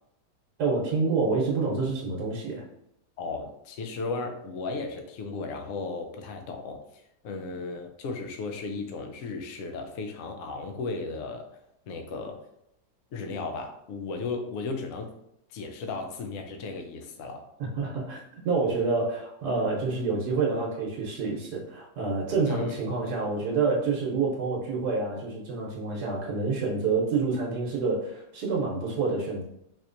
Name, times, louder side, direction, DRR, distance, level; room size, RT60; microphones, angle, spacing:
voice 1, 0.6-2.6 17.6-29.4, right 4 dB, 75° right, -3 dB, 1.4 m, -28 dB
voice 2, 3.2-11.5 11.9-12.4 13.1-15.1 15.5-17.5 22.5-22.7, left 3 dB, 65° left, 5 dB, 0.8 m, -35 dB
4.2 x 2.9 x 2.5 m, 0.78 s
omnidirectional pair, 1.8 m